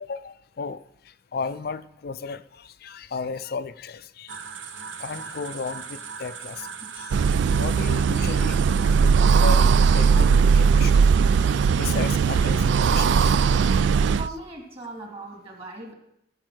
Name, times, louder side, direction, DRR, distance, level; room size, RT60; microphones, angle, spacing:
voice 1, 0.0-0.8 1.3-4.4 5.0-6.7 7.0-7.2 7.6-8.6 9.0-10.3 10.5-11.0 11.4-13.8, left 4 dB, 55° left, 14 dB, 0.5 m, -34 dB
sound 1, 4.3-10.4, right 6 dB, 85° right, 0.8 m, -39 dB
sound 2, 7.1-14.3, right 5 dB, 65° right, 0.3 m, -19 dB
voice 2, 14.1-15.9, right 2 dB, 30° right, 1 dB, 2.3 m, -39 dB
13.5 x 5.4 x 6.1 m, 0.79 s
head